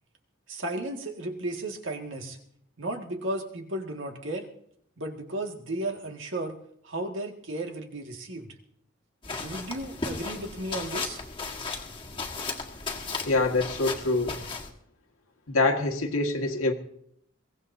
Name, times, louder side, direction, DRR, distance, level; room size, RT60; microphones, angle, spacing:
voice 1, 0.5-2.4 2.8-4.5 5.0-6.6 6.8-8.5 9.4-11.2, right 1 dB, 65° right, 2 dB, 2.0 m, -34 dB
sound 1, 9.2-14.7, left 4 dB, 25° left, 1.6 m, -35 dB
voice 2, 13.3-14.4 15.5-16.7, left 2 dB, 85° left, 2 dB, 1.9 m, -25 dB
22.5 x 17.0 x 2.8 m, 0.69 s
head